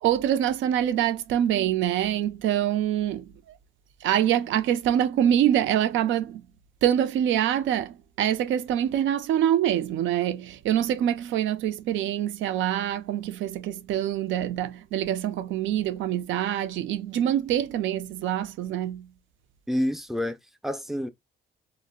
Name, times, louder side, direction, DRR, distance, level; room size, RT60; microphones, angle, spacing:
voice 1, 0.0-3.3 4.0-6.4 6.8-19.1, right 11 dB, 75° right, 0.4 m, -25 dB
voice 2, 19.7-21.1, equal, ahead, 0.4 m, -28 dB
2.1 x 2.0 x 3.5 m
cardioid pair, 90°, 20 cm